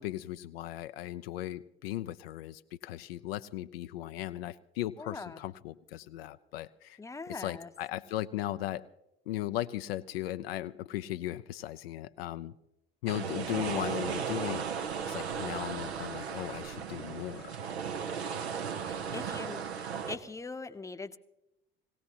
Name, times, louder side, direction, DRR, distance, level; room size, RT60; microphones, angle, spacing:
voice 1, 0.0-7.0 7.3-8.9 9.3-12.5 13.0-17.6, left 14 dB, 70° left, 10 dB, 0.5 m, -37 dB
voice 2, 5.0-5.4 7.0-7.7 18.8-21.2, left 3 dB, 10° left, 10 dB, 0.8 m, -42 dB
sound 1, 13.1-20.2, right 7 dB, 80° right, 0.9 m, -36 dB
21.0 x 17.5 x 2.9 m, 0.87 s
figure-of-eight pair, 60°, 32 cm